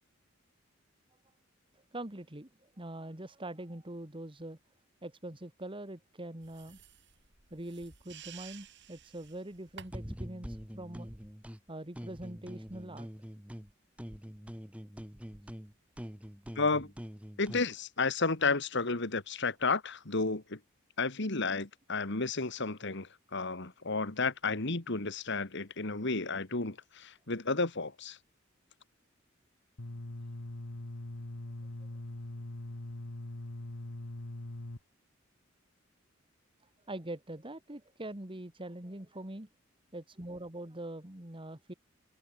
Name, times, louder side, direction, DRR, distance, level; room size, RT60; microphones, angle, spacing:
voice 1, 1.9-2.5 2.8-4.6 5.0-6.8 7.5-11.1 11.7-13.1 23.4-23.5 36.9-39.5 39.9-41.7, right 1 dB, 25° right, 2.1 m, -43 dB
sound 1, 6.4-10.2, right 8 dB, 60° right, 5.2 m, -53 dB
sound 2, 9.9-11.6 11.9-13.7 14.0-17.7, equal, 5° right, 1.3 m, -44 dB
voice 2, 16.6-16.9 17.4-20.6 21.0-28.2, left 3 dB, 65° left, 2.2 m, -32 dB
sound 3, 29.8-34.8, left 1 dB, 85° left, 1.7 m, -42 dB
head